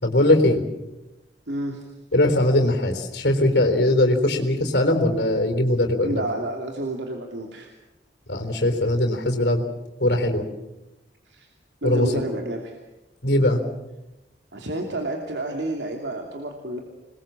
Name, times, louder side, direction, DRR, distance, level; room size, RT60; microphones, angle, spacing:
voice 1, 0.0-0.6 2.1-6.2 8.3-9.7 10.0-10.5 11.8-12.1 13.2-13.6, left 1 dB, 70° left, 5 dB, 3.9 m, -20 dB
voice 2, 1.5-1.8 6.0-7.7 11.3-11.5 11.8-12.8 14.5-16.8, right 1 dB, 85° right, 2 dB, 2.9 m, -30 dB
26.5 x 21.0 x 7.5 m, 0.97 s
head